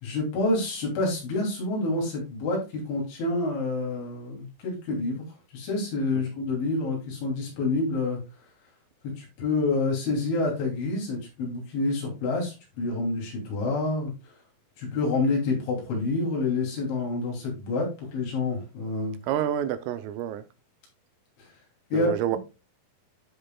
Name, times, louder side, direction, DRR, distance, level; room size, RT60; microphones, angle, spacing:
voice 1, 0.0-5.2 5.5-8.2 9.2-14.3 14.8-19.2 21.4-21.5 21.9-22.1, left 3 dB, 65° left, 5.2 m, -28 dB
voice 2, 19.3-20.4 21.9-22.4, right 10 dB, 85° right, 3.3 m, -28 dB
14.5 x 5.1 x 2.3 m
omnidirectional pair, 5.9 m